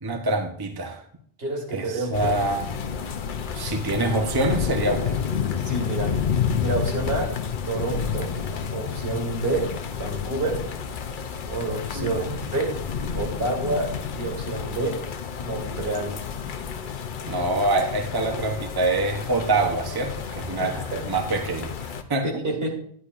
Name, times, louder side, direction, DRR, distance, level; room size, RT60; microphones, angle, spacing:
voice 1, 0.0-1.0 1.7-2.6 3.5-5.1 11.9-12.4 17.3-22.4, right 2 dB, 25° right, 5 dB, 0.7 m, -25 dB
voice 2, 1.4-2.4 5.6-6.1 6.6-7.4 7.7-8.4 8.7-10.6 11.5-12.2 12.5-12.8 13.1-15.0 15.4-16.2 20.6-21.0 22.4-22.7, right 2 dB, 75° right, 0 dB, 2.2 m, -28 dB
sound 1, 2.1-22.0, left 7 dB, 55° left, 0.8 m, -30 dB
10.5 x 9.9 x 2.5 m, 0.62 s
omnidirectional pair, 1.0 m